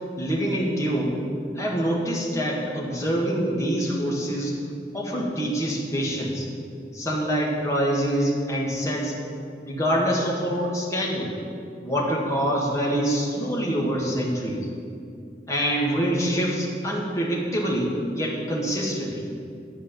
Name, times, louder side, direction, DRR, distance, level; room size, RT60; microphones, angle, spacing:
voice 1, 0.2-1.2 1.6-4.6 4.9-6.5 6.9-9.1 9.6-11.3 11.8-14.7 15.5-19.3, equal, 20° left, -3 dB, 1.8 m, -25 dB
11.5 x 5.0 x 8.5 m, 2.4 s
head